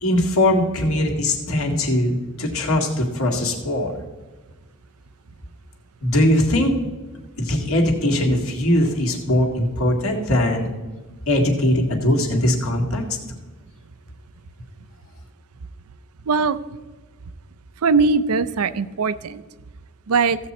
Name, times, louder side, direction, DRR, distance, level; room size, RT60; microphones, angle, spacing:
voice 1, 0.0-4.0 6.0-6.7 7.4-10.7 11.3-13.0, left 1 dB, 70° left, 0 dB, 2.0 m, -20 dB
voice 2, 16.3-16.6 17.8-19.4 20.1-20.4, right 4 dB, 85° right, 15 dB, 0.5 m, -20 dB
15.5 x 7.5 x 4.3 m, 1.3 s
head